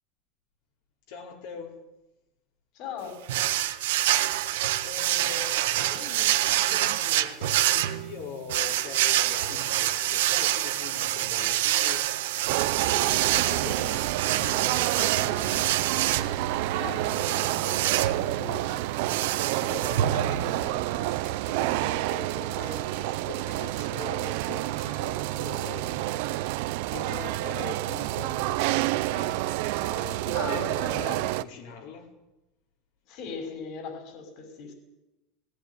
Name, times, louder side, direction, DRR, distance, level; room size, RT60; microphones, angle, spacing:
voice 1, 1.1-1.8 4.8-12.1 12.3-12.5 12.7-15.7 19.5-29.5 29.8-32.1, left 6 dB, 80° left, -1 dB, 5.3 m, -42 dB
voice 2, 2.7-3.2 16.8-18.8 30.3-31.2 33.1-34.7, left 5 dB, 55° left, 7 dB, 5.7 m, -39 dB
sound 1, 3.3-20.7, right 13 dB, 90° right, 1.4 m, -27 dB
sound 2, 12.5-31.4, right 17 dB, 70° right, 0.9 m, -29 dB
18.5 x 18.5 x 9.7 m, 0.95 s
supercardioid pair, 125°, 0 cm